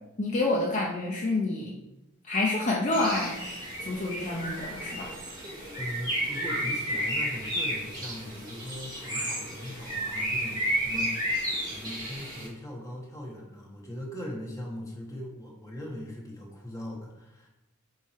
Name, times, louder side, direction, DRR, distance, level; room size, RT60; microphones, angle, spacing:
voice 1, 0.2-1.7 2.2-3.4 3.8-5.1, left 2 dB, 35° left, -2 dB, 0.7 m, -28 dB
Bird, 2.9-12.5, equal, 20° right, 2.2 m, -32 dB
voice 2, 5.8-11.1 11.6-17.5, left 1 dB, 15° left, -2 dB, 1.5 m, -40 dB
8.1 x 3.3 x 4.3 m, 0.93 s
head